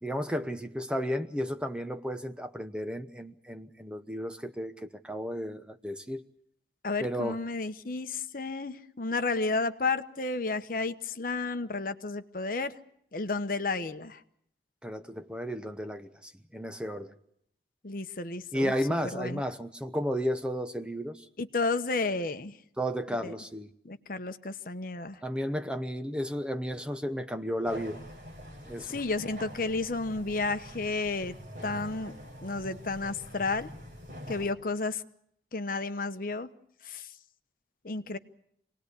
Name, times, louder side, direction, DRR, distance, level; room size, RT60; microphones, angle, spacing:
voice 1, 0.0-6.2 7.0-7.4 14.8-17.1 18.5-21.3 22.8-23.7 25.2-28.0 28.6-28.9, equal, 5° right, 8 dB, 0.9 m, -33 dB
voice 2, 6.8-12.8 13.1-14.2 17.8-18.7 19.1-19.4 21.4-22.6 23.2-23.3 23.8-25.2 28.8-31.3 31.6-32.1 32.4-33.7 34.3-35.0 35.5-36.5 36.8-37.1 37.8-38.2, left 3 dB, 50° left, 10 dB, 1.0 m, -32 dB
sound 1, 27.6-34.5, equal, 45° right, 6.8 m, -45 dB
26.5 x 19.0 x 8.3 m, 0.72 s
head